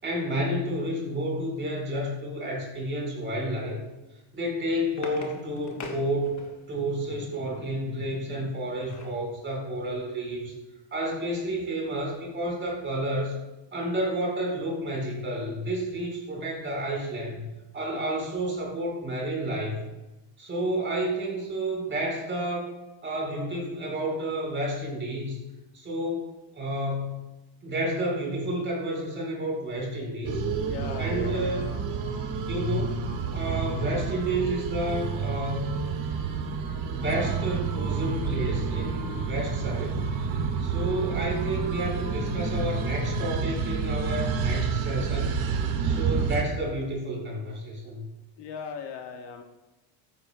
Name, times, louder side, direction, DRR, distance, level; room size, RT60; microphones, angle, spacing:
voice 1, 0.0-3.8 4.3-6.4 6.7-10.5 10.9-13.3 13.7-17.4 17.7-19.8 20.4-22.7 23.0-25.4 25.7-27.2 27.6-30.5 31.0-31.6 32.5-33.0 33.3-35.7 36.9-40.3 40.6-45.3 45.8-48.0, right 1 dB, 25° right, -2 dB, 4.6 m, -30 dB
sound 1, 4.3-6.8 8.3-9.2 9.7-9.8 10.1-10.3, left 4 dB, 35° left, 1.5 m, -43 dB
voice 2, 17.9-18.3 30.5-31.9 48.4-49.4, left 6 dB, 55° left, 4 dB, 1.1 m, -39 dB
sound 2, 30.2-46.4, right 5 dB, 65° right, 1.8 m, -29 dB
14.5 x 13.5 x 2.2 m, 1.0 s
cardioid pair, 170°, 49 cm